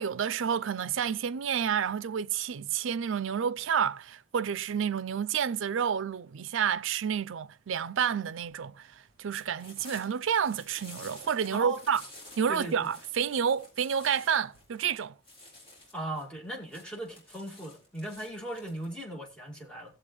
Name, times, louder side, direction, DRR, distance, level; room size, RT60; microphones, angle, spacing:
voice 1, 0.0-12.0 12.4-15.1, right 7 dB, 80° right, 0.4 m, -29 dB
sound 1, 7.7-18.9, left 1 dB, 25° left, 4.0 m, -52 dB
voice 2, 12.5-12.9 15.9-20.0, right 1 dB, 5° left, 2.2 m, -38 dB
17.5 x 7.6 x 3.1 m
head